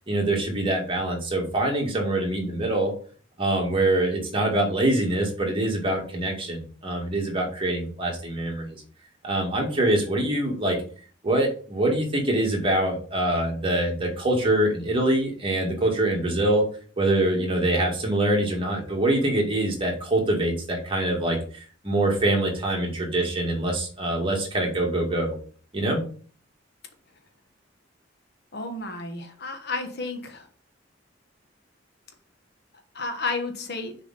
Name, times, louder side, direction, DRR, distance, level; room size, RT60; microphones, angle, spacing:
voice 1, 0.1-2.9 3.4-8.8 9.2-10.8 11.2-16.7 17.0-25.4 25.7-26.0, right 1 dB, 30° right, 0 dB, 2.1 m, -24 dB
voice 2, 28.5-30.5 32.9-34.0, left 3 dB, 60° left, 5 dB, 1.3 m, -32 dB
6.8 x 4.9 x 4.1 m, 0.42 s
head